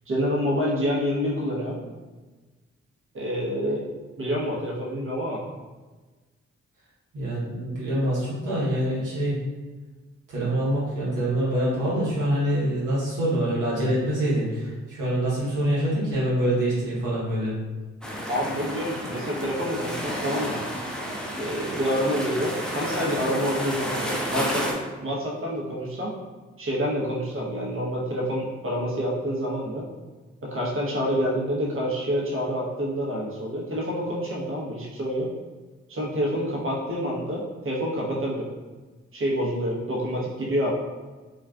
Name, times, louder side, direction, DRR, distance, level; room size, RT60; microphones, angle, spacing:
voice 1, 0.1-1.8 3.1-3.8 4.2-5.4 18.3-20.6 21.4-26.1 26.6-29.9 30.4-35.3 35.9-38.5 39.1-40.7, equal, 45° right, -3 dB, 0.8 m, -27 dB
voice 2, 7.1-9.4 10.3-17.5, right 1 dB, 85° right, -8 dB, 1.0 m, -25 dB
sound 1, 18.0-24.7, equal, ahead, 0.5 m, -31 dB
2.4 x 2.3 x 2.2 m, 1.3 s
supercardioid pair, 45°, 31 cm